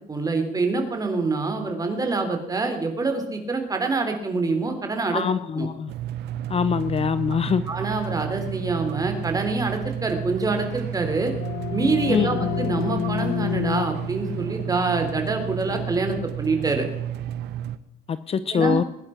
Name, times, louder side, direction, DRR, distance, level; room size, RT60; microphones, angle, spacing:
voice 1, 0.1-5.2 5.6-5.7 7.7-11.3 11.7-16.9 18.5-18.8, right 3 dB, 20° right, 5 dB, 3.9 m, -25 dB
voice 2, 5.1-5.9 6.5-7.6 12.1-12.5 18.1-18.8, left 6 dB, 35° left, 14 dB, 0.8 m, -23 dB
sound 1, 5.9-17.8, right 10 dB, 80° right, 1.0 m, -32 dB
sound 2, 10.8-16.3, left 12 dB, 75° left, 1.0 m, -31 dB
21.5 x 10.5 x 5.9 m, 0.88 s
cardioid pair, 110°, 17 cm